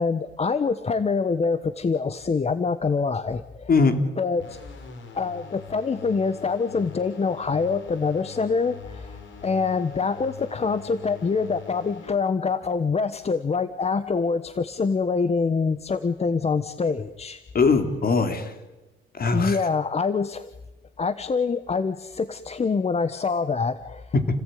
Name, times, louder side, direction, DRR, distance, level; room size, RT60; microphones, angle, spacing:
voice 1, 0.0-3.7 4.2-4.6 5.1-17.4 19.3-20.5 21.0-24.1, left 4 dB, 30° left, 13 dB, 1.1 m, -25 dB
voice 2, 3.7-4.1 17.5-18.5 19.1-19.6 24.1-24.3, left 4 dB, 50° left, 7 dB, 3.5 m, -21 dB
sound 1, 4.4-12.1, left 7 dB, 70° left, 4.9 m, -44 dB
29.5 x 18.5 x 9.3 m, 1.1 s
cardioid pair, 90°, 20 cm